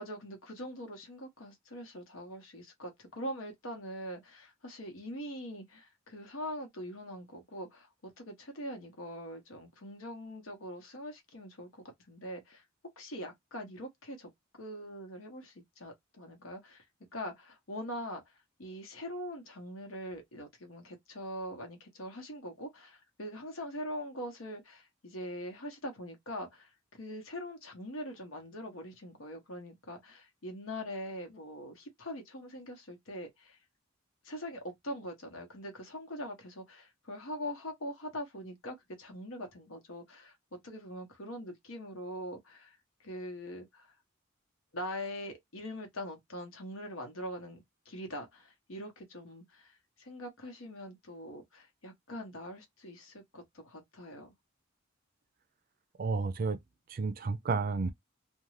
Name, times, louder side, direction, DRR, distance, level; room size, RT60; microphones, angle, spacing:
voice 1, 0.0-12.6 13.0-14.3 14.6-16.8 17.1-18.3 18.6-33.6 34.2-43.9 44.7-54.3, equal, 90° left, 1.0 m, -43 dB
voice 2, 56.0-56.6 56.9-57.9, right 4 dB, 45° right, 0.4 m, -31 dB
2.5 x 2.2 x 3.1 m
head